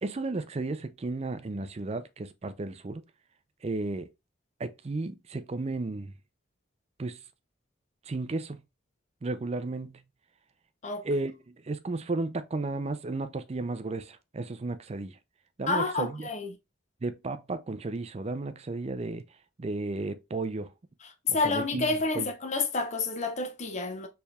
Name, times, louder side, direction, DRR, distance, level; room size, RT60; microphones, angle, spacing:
voice 1, 0.0-3.0 3.6-4.1 4.6-6.1 7.0-7.2 8.1-8.6 9.2-10.0 11.0-15.2 15.6-16.3 17.0-19.2 19.6-20.7 21.3-21.9 22.2-22.3, right 2 dB, 30° right, 0.4 m, -33 dB
voice 2, 15.7-16.5 21.3-24.1, left 3 dB, 35° left, 0.7 m, -29 dB
4.4 x 3.3 x 2.3 m
head